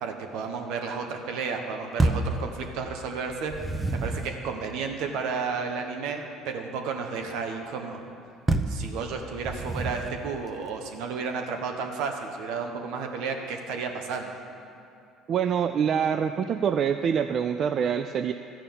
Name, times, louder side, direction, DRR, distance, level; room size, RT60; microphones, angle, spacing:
voice 1, 0.0-3.5 3.9-8.0 8.7-14.3, right 5 dB, 75° right, 4 dB, 1.3 m, -32 dB
sound 1, 2.0-2.4 3.3-4.3 8.5-8.8 9.4-10.2, right 2 dB, 20° right, 0.8 m, -27 dB
voice 2, 15.3-18.3, right 7 dB, 50° right, 9 dB, 0.4 m, -25 dB
13.0 x 5.6 x 8.9 m, 2.6 s
supercardioid pair, 85°, 0 cm